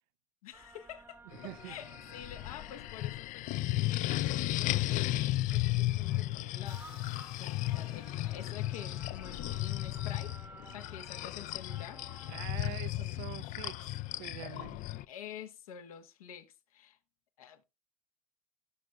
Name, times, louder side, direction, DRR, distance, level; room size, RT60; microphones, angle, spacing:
voice 1, 0.4-10.4 10.7-12.0 15.1-17.0 17.4-17.6, left 9 dB, 80° left, 1.3 m, -48 dB
sound 1, 0.5-12.5, right 3 dB, 10° right, 0.8 m, -56 dB
sound 2, 1.3-15.0, left 16 dB, 45° left, 0.4 m, -34 dB
voice 2, 1.4-1.8 12.3-14.8, right 20 dB, 65° right, 0.5 m, -45 dB
sound 3, 6.7-12.5, left 11 dB, 65° left, 2.0 m, -60 dB
17.0 x 6.6 x 2.3 m
hypercardioid pair, 85°, 18 cm